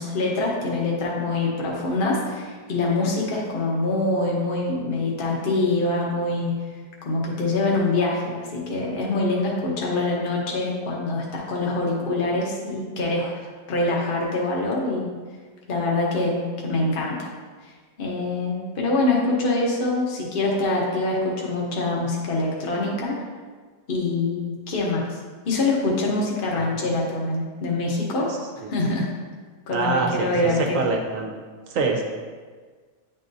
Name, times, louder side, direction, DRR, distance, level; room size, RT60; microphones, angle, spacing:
voice 1, 0.0-6.5 7.0-15.1 15.7-17.3 17.6-23.2 23.9-25.2 25.4-28.3 28.7-29.1 29.7-30.8, left 2 dB, 40° left, -3 dB, 1.0 m, -25 dB
voice 2, 29.7-31.3 31.7-32.0, right 3 dB, 65° right, 2 dB, 1.1 m, -25 dB
9.7 x 3.8 x 2.7 m, 1.5 s
omnidirectional pair, 1.6 m